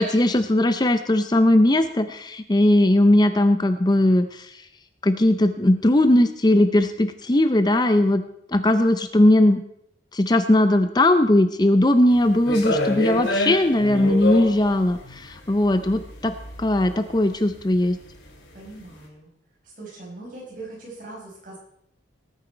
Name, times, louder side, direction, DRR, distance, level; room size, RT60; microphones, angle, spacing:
voice 1, 0.0-4.6 5.0-8.2 8.5-9.6 10.1-16.3 16.6-18.0, left 1 dB, 25° left, 9 dB, 0.6 m, -19 dB
sound 1, 12.2-18.5, left 1 dB, 85° left, 3.0 m, -28 dB
voice 2, 18.5-19.3 19.6-21.6, right 2 dB, 50° right, -3 dB, 5.1 m, -40 dB
18.5 x 9.0 x 4.5 m, 0.74 s
head